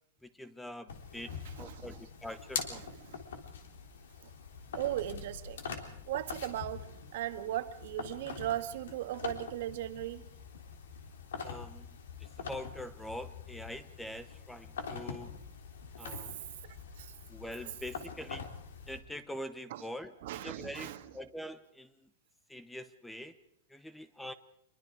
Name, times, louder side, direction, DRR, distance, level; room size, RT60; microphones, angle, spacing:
voice 1, 0.2-2.9 11.4-11.9 12.2-15.3 16.0-16.4 17.3-18.5 18.9-20.1 20.4-22.1 22.5-23.4 23.7-24.3, left 1 dB, 5° left, 13 dB, 0.7 m, -44 dB
sound 1, 0.9-19.0, left 6 dB, 80° left, 3.5 m, -44 dB
voice 2, 1.4-2.0 3.0-3.2 4.7-5.6 6.1-6.9 7.1-10.2 17.0-17.1 19.7-19.8 20.2-21.0, right 13 dB, 55° right, 9 dB, 1.6 m, -37 dB
25.0 x 22.5 x 4.8 m, 0.74 s
supercardioid pair, 155°, 0 cm